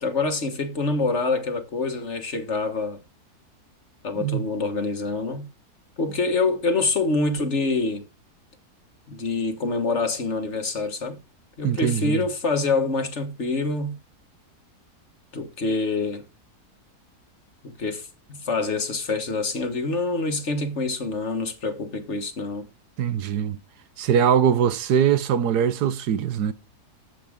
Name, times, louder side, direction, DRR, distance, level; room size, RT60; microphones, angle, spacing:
voice 1, 0.0-3.0 4.0-5.5 6.0-8.0 9.1-11.2 11.6-14.0 15.3-16.2 17.6-22.7, left 3 dB, 45° left, 1.7 m, -26 dB
voice 2, 11.6-12.2 23.0-23.6 24.0-26.5, right 8 dB, 80° right, 1.4 m, -22 dB
13.5 x 7.8 x 3.6 m
omnidirectional pair, 1.7 m